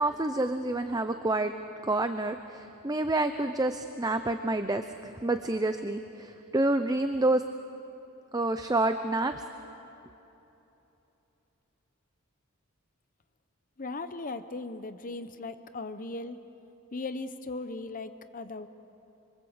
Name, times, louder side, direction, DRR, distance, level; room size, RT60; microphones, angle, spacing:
voice 1, 0.0-1.5 1.8-7.4 8.3-9.3, right 2 dB, 15° right, 8 dB, 0.7 m, -28 dB
voice 2, 13.8-16.4 16.9-18.7, left 3 dB, 40° left, 10 dB, 0.8 m, -38 dB
26.0 x 25.5 x 8.0 m, 3.0 s
head